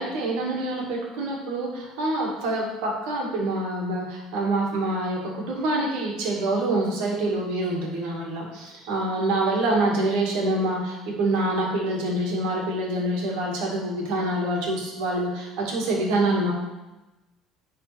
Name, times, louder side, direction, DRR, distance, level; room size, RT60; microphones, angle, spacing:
voice 1, 0.0-16.5, right 2 dB, 85° right, -2 dB, 2.2 m, -26 dB
10.5 x 4.3 x 3.5 m, 1.1 s
cardioid pair, 130°, 0 cm